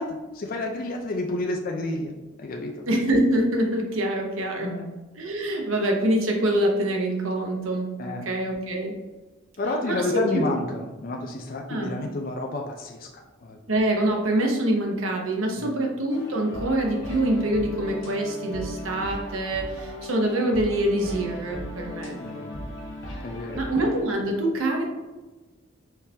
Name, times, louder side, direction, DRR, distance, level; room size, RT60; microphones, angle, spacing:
voice 1, 0.0-2.1 2.4-2.9 4.6-4.9 8.0-8.3 9.6-13.6 15.6-15.7 22.2-22.6 23.2-23.7, left 2 dB, 45° left, 2 dB, 0.4 m, -30 dB
voice 2, 2.9-4.7 5.2-8.9 9.9-10.5 11.7-11.9 13.7-22.2 23.6-24.9, right 1 dB, 90° right, 1 dB, 0.9 m, -25 dB
sound 1, 16.1-24.0, left 1 dB, 65° left, 1.0 m, -37 dB
4.5 x 3.5 x 2.8 m, 1.2 s
head